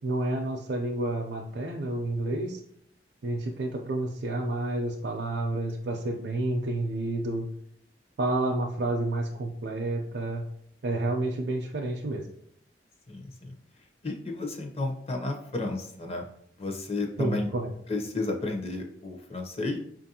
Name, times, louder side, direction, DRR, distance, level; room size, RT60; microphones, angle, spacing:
voice 1, 0.0-2.6 3.2-7.4 8.2-10.4 10.8-12.3 17.2-17.7, right 2 dB, 70° right, 0 dB, 0.4 m, -30 dB
voice 2, 13.1-13.5 14.0-16.2 16.6-17.5 17.9-19.8, left 2 dB, 35° left, 3 dB, 0.6 m, -32 dB
5.2 x 2.5 x 2.7 m, 0.69 s
head